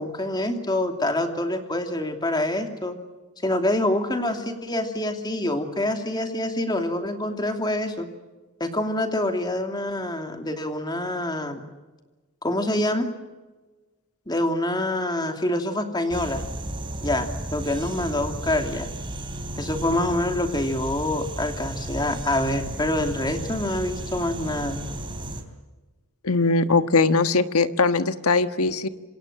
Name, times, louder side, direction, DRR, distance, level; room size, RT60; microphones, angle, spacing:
voice 1, 0.0-3.0 3.4-8.1 8.6-11.6 12.4-13.1 14.3-16.4 17.0-18.9 19.6-24.8, left 1 dB, 20° left, 5 dB, 2.8 m, -26 dB
sound 1, 16.1-25.4, right 1 dB, 25° right, 3.6 m, -34 dB
voice 2, 26.2-28.9, left 3 dB, 85° left, 9 dB, 1.5 m, -20 dB
27.0 x 26.0 x 7.7 m, 1.2 s
head